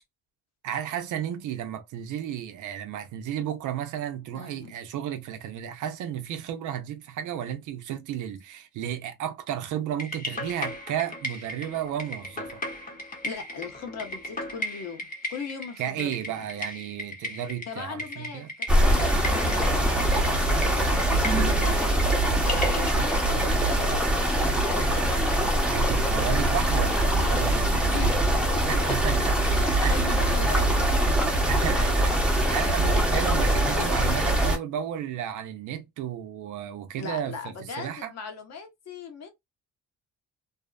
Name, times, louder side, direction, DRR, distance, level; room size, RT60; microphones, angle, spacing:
voice 1, 0.6-12.6 15.8-18.5 25.7-28.1 28.7-29.3 29.7-30.1 31.5-37.4 37.8-38.1, right 10 dB, 80° right, 0.6 m, -33 dB
voice 2, 4.3-4.8 13.2-16.5 17.7-20.3 20.8-21.8 22.4-24.1 24.5-25.3 27.9-28.2 28.5-28.6 29.5-31.2 37.0-39.3, left 5 dB, 60° left, 1.0 m, -39 dB
sound 1, 10.0-22.9, left 1 dB, 30° left, 0.9 m, -36 dB
sound 2, 18.7-34.6, right 1 dB, 5° right, 0.8 m, -23 dB
2.6 x 2.1 x 2.3 m
cardioid pair, 90°, 30 cm